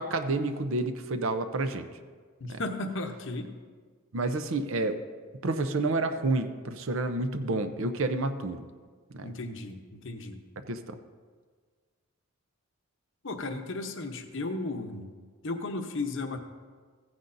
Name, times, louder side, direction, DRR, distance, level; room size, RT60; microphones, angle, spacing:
voice 1, 0.0-1.9 2.5-2.6 4.1-5.0 5.4-8.6 9.1-9.3 10.7-11.0, right 2 dB, 65° right, 9 dB, 0.6 m, -29 dB
voice 2, 2.4-3.5 9.2-10.4 13.2-15.1 15.4-16.4, left 2 dB, 55° left, 6 dB, 0.8 m, -35 dB
15.5 x 9.7 x 2.6 m, 1.5 s
head